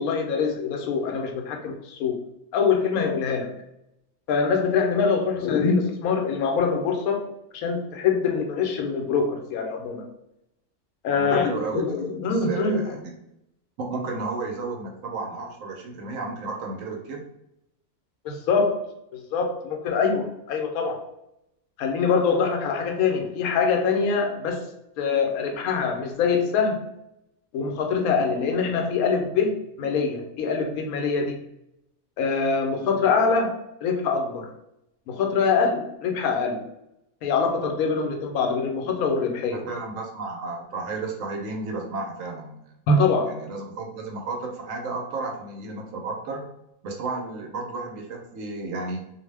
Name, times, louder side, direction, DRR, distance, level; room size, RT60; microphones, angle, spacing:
voice 1, 0.0-2.2 2.5-3.6 4.3-7.3 7.5-10.0 11.0-13.0 18.2-18.9 19.1-21.0 21.8-24.7 25.0-26.9 27.5-31.4 32.2-34.5 35.1-36.6 37.2-39.7 42.9-43.4, left 5 dB, 85° left, 3 dB, 1.0 m, -24 dB
voice 2, 11.1-13.1 13.8-17.2 39.5-42.6 43.3-46.4 46.8-49.0, right 3 dB, 70° right, 1 dB, 1.0 m, -33 dB
2.6 x 2.1 x 3.2 m, 0.82 s
omnidirectional pair, 1.5 m